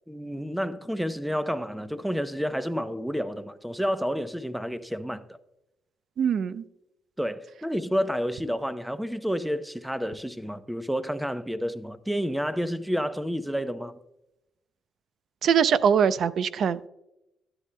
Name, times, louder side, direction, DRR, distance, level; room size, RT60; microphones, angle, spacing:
voice 1, 0.1-5.2 7.2-13.9, equal, ahead, 0.7 m, -30 dB
voice 2, 6.2-6.6 15.4-16.9, right 7 dB, 60° right, 0.5 m, -22 dB
13.0 x 9.9 x 2.2 m
cardioid pair, 90°, 0 cm